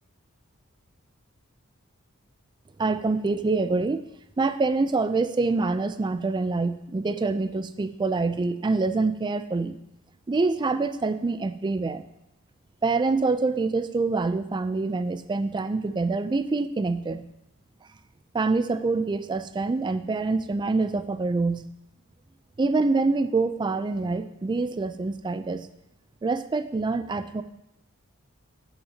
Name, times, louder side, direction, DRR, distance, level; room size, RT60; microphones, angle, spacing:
voice 1, 2.8-4.0 4.4-9.8 10.3-12.0 12.8-17.3 18.3-21.6 22.6-25.7 26.2-27.4, right 3 dB, 20° right, 12 dB, 0.3 m, -26 dB
13.0 x 5.8 x 2.8 m, 0.84 s
head